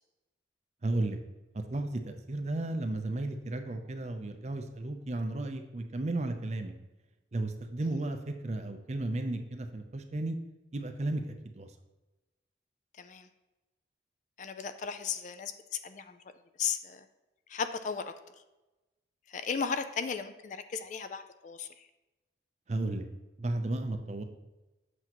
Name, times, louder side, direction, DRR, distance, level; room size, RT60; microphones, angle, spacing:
voice 1, 0.8-1.2 1.7-6.7 7.3-10.4 10.7-11.7 22.7-23.0 23.4-24.2, right 2 dB, 35° right, 7 dB, 0.5 m, -34 dB
voice 2, 13.0-13.3 14.4-16.2 16.6-17.1 17.5-18.1 19.3-21.9, left 6 dB, 40° left, 10 dB, 0.3 m, -35 dB
7.9 x 6.1 x 3.0 m, 1.1 s
head